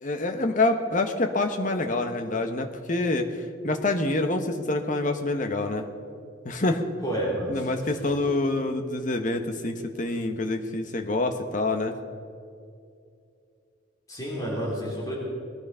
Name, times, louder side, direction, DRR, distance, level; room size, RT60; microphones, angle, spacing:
voice 1, 0.0-5.9 6.4-6.8 7.5-11.9, left 2 dB, 40° left, 5 dB, 1.0 m, -26 dB
voice 2, 7.0-7.9 8.2-8.3 14.1-15.1, right 1 dB, 15° left, -5 dB, 3.5 m, -30 dB
19.5 x 11.5 x 5.6 m, 2.4 s
head